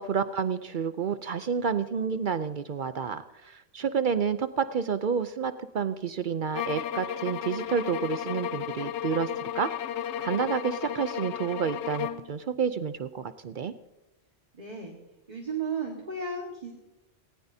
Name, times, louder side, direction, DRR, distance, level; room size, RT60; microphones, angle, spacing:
voice 1, 0.0-9.7 10.2-13.7, right 6 dB, 55° right, 12 dB, 0.6 m, -29 dB
sound 1, 6.5-12.3, left 10 dB, 70° left, 0.9 m, -34 dB
voice 2, 14.6-15.0 15.3-16.7, right 4 dB, 35° right, 0 dB, 1.7 m, -34 dB
18.5 x 18.5 x 2.7 m, 0.94 s
omnidirectional pair, 1.2 m